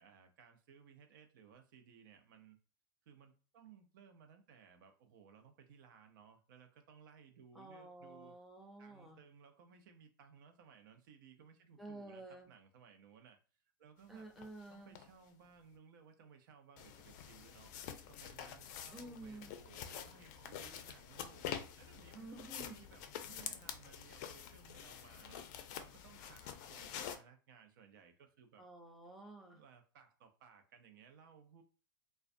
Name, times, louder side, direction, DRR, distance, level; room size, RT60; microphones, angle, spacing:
voice 1, 0.0-2.6 3.1-8.3 8.8-13.4 13.8-14.3 14.7-17.8 18.1-25.4 25.8-28.6 29.5-31.6, right 7 dB, 65° right, 0.6 m, -61 dB
voice 2, 7.5-9.2 11.8-12.5 14.1-15.0 18.9-19.5 22.1-22.8 28.6-29.6, right 2 dB, ahead, 0.6 m, -51 dB
sound 1, 14.4-14.5 15.0-15.1 16.8-27.2, left 9 dB, 55° left, 0.4 m, -47 dB
2.4 x 2.2 x 2.5 m
hypercardioid pair, 110°, 12 cm